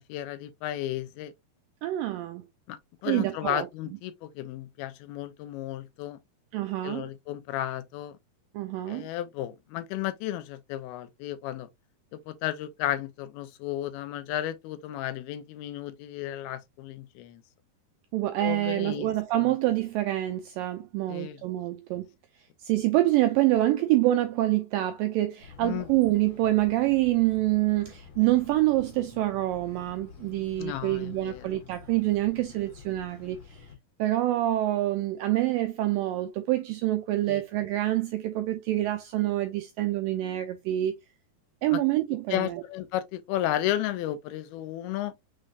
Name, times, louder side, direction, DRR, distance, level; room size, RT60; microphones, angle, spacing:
voice 1, 0.0-1.3 2.7-6.2 6.8-8.2 8.9-11.7 12.1-17.4 18.4-19.1 19.4-19.5 21.1-21.4 25.6-25.9 30.6-31.5 37.3-37.4 41.7-41.8 42.3-45.2, left 13 dB, 80° left, 2.5 m, -33 dB
voice 2, 1.8-2.4 3.0-3.7 6.5-7.1 8.5-9.1 18.1-22.1 22.6-33.7 34.0-40.9 41.6-42.6, right 15 dB, 85° right, 1.9 m, -26 dB
sound 1, 25.4-33.8, left 6 dB, 50° left, 2.8 m, -49 dB
6.4 x 3.2 x 2.4 m
omnidirectional pair, 4.5 m